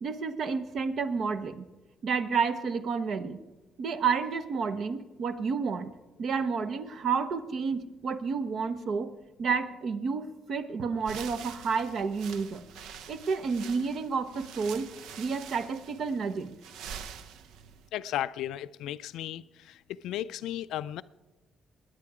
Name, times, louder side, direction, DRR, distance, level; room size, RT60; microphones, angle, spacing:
voice 1, 0.0-1.7 2.0-3.4 3.8-5.9 6.2-9.1 9.4-12.6 13.1-14.9 15.2-16.6, right 5 dB, 60° right, 0.9 m, -30 dB
sound 1, 11.0-17.9, right 7 dB, 90° right, 0.7 m, -46 dB
voice 2, 17.9-19.8 20.0-21.0, left 12 dB, 90° left, 0.3 m, -35 dB
20.5 x 9.8 x 4.9 m
cardioid pair, 90°, 0 cm